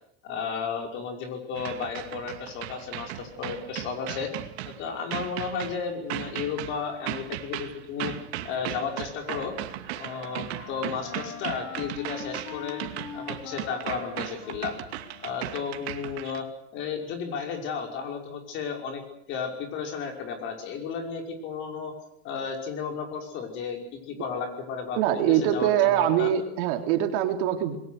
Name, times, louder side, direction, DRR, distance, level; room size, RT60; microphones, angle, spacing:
voice 1, 0.2-4.3 4.6-8.1 8.4-9.6 9.9-12.8 13.1-14.7 15.2-16.5 16.7-19.0 19.3-21.9 22.2-23.8 24.1-26.3, left 6 dB, 35° left, 3 dB, 5.7 m, -33 dB
sound 1, 1.6-16.4, right 13 dB, 75° right, 2.5 m, -37 dB
Wind instrument woodwind instrument, 9.0-16.2, left 7 dB, 55° left, 3.6 m, -43 dB
voice 2, 25.0-27.8, right 11 dB, 60° right, 5 dB, 3.3 m, -23 dB
27.5 x 22.0 x 6.6 m, 0.74 s
supercardioid pair, 170°, 32 cm